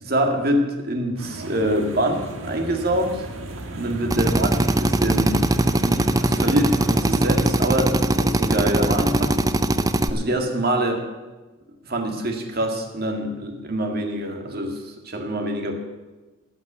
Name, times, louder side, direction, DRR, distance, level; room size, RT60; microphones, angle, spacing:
voice 1, 0.0-3.3 3.8-5.4 5.8-9.4 10.1-11.0 11.8-15.8, right 1 dB, 50° right, 3 dB, 1.9 m, -25 dB
sound 1, 1.2-7.5, right 1 dB, 85° right, 1.6 m, -34 dB
Drill, 4.1-10.1, right 1 dB, 20° right, 0.5 m, -21 dB
14.0 x 6.0 x 10.0 m, 1.2 s
head